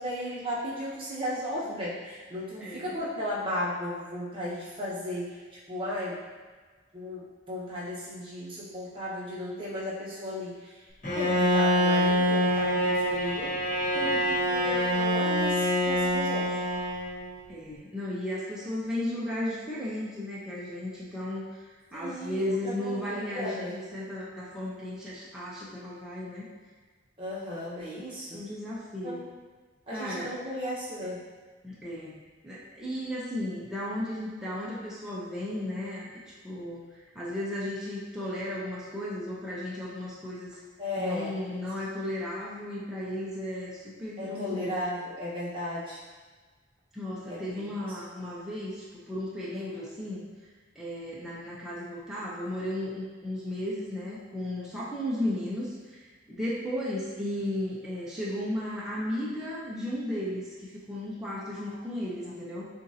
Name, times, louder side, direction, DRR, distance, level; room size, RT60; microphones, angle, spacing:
voice 1, 0.0-5.4 5.7-6.2 6.9-10.9 11.1-13.6 13.9-16.6 21.9-23.8 27.2-28.4 29.0-29.2 29.9-31.2 40.8-41.4 44.2-46.0 47.3-48.0 49.5-49.8 61.7-61.8 62.2-62.3, left 1 dB, 25° right, -8 dB, 1.2 m, -35 dB
Bowed string instrument, 11.0-17.3, equal, 40° left, 1.4 m, -25 dB
voice 2, 17.5-21.5 21.9-26.5 28.0-28.1 28.3-29.2 29.9-30.3 31.6-36.8 37.1-40.6 41.0-44.8 46.9-50.3 50.7-56.0 56.3-62.7, left 1 dB, 5° right, -8 dB, 0.7 m, -35 dB
6.9 x 2.6 x 2.8 m, 1.4 s
head